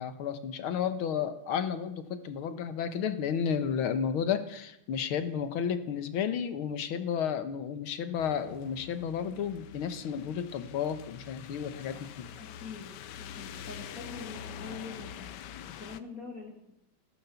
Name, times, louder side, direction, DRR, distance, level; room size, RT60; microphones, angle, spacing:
voice 1, 0.0-12.3, left 7 dB, 80° left, 11 dB, 2.0 m, -32 dB
sound 1, 8.2-16.0, left 9 dB, 65° left, 1.2 m, -45 dB
voice 2, 12.4-15.2 15.8-16.5, left 4 dB, 40° left, 1 dB, 2.8 m, -44 dB
15.5 x 13.0 x 7.1 m, 0.81 s
omnidirectional pair, 2.3 m